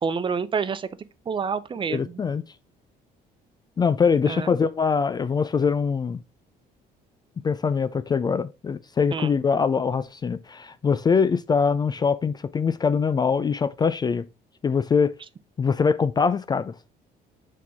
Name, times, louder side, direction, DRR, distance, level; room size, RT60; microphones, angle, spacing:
voice 1, 0.0-0.9 1.3-2.1 4.3-4.5 9.1-9.3, right 5 dB, 30° right, 0.5 m, -27 dB
voice 2, 1.9-2.4 3.8-6.2 7.4-14.3 14.6-15.1 15.6-16.7, left 5 dB, 25° left, 0.3 m, -23 dB
6.2 x 4.5 x 3.4 m
cardioid pair, 110°, 17 cm